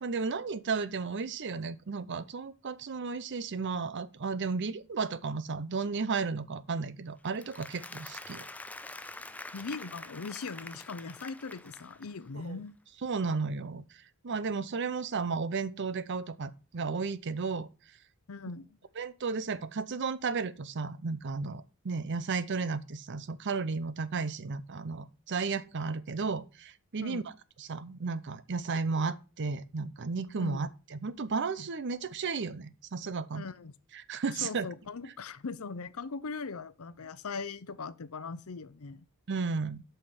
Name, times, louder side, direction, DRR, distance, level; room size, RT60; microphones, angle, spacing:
voice 1, 0.0-8.5 12.4-12.6 13.0-17.7 19.0-27.3 27.6-33.4 33.9-34.7 39.3-39.8, right 4 dB, 55° right, 0.6 m, -34 dB
Applause, 7.2-12.3, left 2 dB, 5° left, 0.4 m, -46 dB
voice 2, 9.5-12.8 18.3-18.8 27.0-27.3 30.4-30.6 33.3-33.7 34.4-39.0, left 4 dB, 70° left, 0.7 m, -40 dB
7.9 x 5.7 x 5.7 m
head